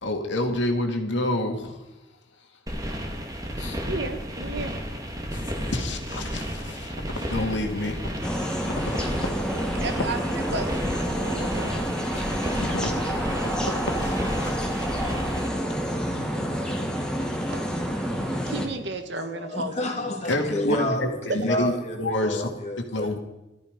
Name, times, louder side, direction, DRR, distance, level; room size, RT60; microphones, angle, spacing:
voice 1, 0.0-1.8 3.6-3.8 5.3-8.1 8.6-9.3 9.6-9.7 12.1-14.8 15.0-15.2 20.3-21.7 22.0-22.5 22.9-23.2, left 1 dB, 65° left, 2.2 m, -29 dB
sound 1, 2.7-15.5, equal, 15° right, 1.8 m, -32 dB
voice 2, 3.9-4.7 9.7-11.9 17.5-17.7 18.5-19.9 21.3-21.4, right 2 dB, 55° right, 1.5 m, -33 dB
sound 2, 8.2-18.7, equal, 5° left, 1.6 m, -28 dB
voice 3, 19.3-23.2, left 1 dB, 35° left, 2.6 m, -30 dB
14.0 x 13.5 x 5.2 m
head